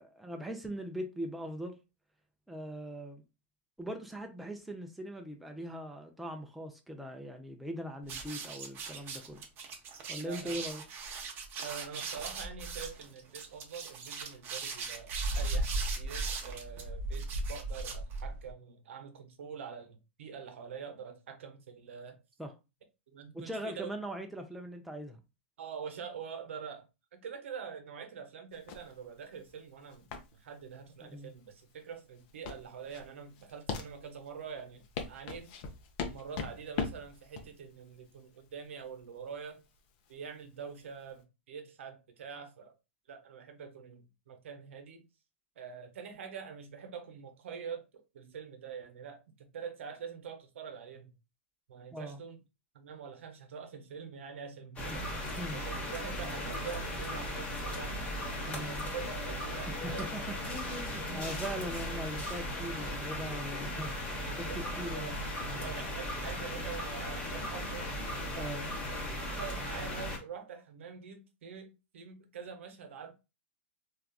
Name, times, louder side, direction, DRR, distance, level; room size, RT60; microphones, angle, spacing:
voice 1, 0.0-1.8 2.5-3.2 3.8-9.4 10.1-10.8 22.4-22.5 23.3-25.2 31.0-31.3 51.9-52.2 54.9-55.6 58.4-58.9 59.7-64.5 64.8-65.1 65.5-65.8 68.3-68.7, right 1 dB, ahead, 0.4 m, -41 dB
sound 1, 8.0-18.5, right 3 dB, 30° right, 0.7 m, -37 dB
voice 2, 10.2-10.6 11.6-22.2 23.1-23.9 25.6-26.8 27.1-35.5 36.1-39.6 40.1-42.7 43.1-45.1 45.6-47.9 48.1-51.1 51.7-52.4 52.7-55.2 55.5-58.0 58.4-60.1 60.8-61.6 64.5-64.7 64.9-65.2 65.5-73.1, right 6 dB, 75° right, 0.7 m, -45 dB
sound 2, 28.5-41.2, left 5 dB, 45° left, 0.6 m, -42 dB
sound 3, 54.8-70.2, left 1 dB, 20° left, 0.9 m, -37 dB
3.4 x 2.4 x 2.2 m
hypercardioid pair, 130°, 7 cm